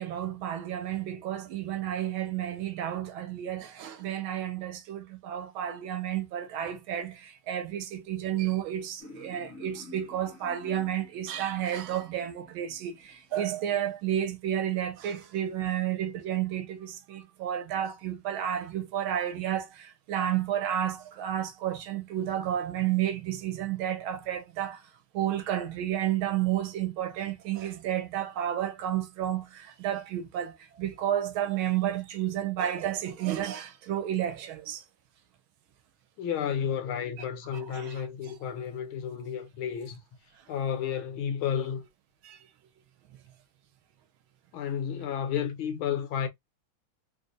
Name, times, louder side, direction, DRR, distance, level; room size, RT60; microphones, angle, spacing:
voice 1, 0.0-24.8 25.1-34.8 37.7-38.0 42.2-42.4, right 11 dB, 80° right, 1.5 m, -31 dB
sound 1, 9.0-13.6, left 2 dB, 50° left, 1.1 m, -51 dB
voice 2, 36.2-40.0 40.5-41.8 44.5-46.3, left 8 dB, 80° left, 1.7 m, -32 dB
3.8 x 2.5 x 2.5 m
omnidirectional pair, 2.3 m